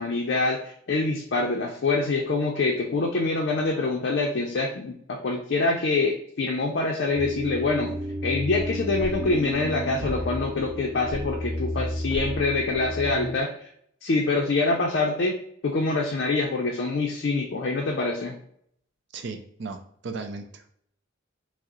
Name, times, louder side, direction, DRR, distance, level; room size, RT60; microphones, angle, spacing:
voice 1, 0.0-7.9 8.2-13.5 14.0-15.3 15.6-18.4, left 3 dB, 55° left, 0 dB, 0.4 m, -25 dB
sound 1, 7.1-13.4, equal, 10° right, 0.5 m, -32 dB
voice 2, 19.1-20.7, right 4 dB, 60° right, 6 dB, 0.4 m, -36 dB
4.6 x 2.0 x 2.9 m, 0.66 s
head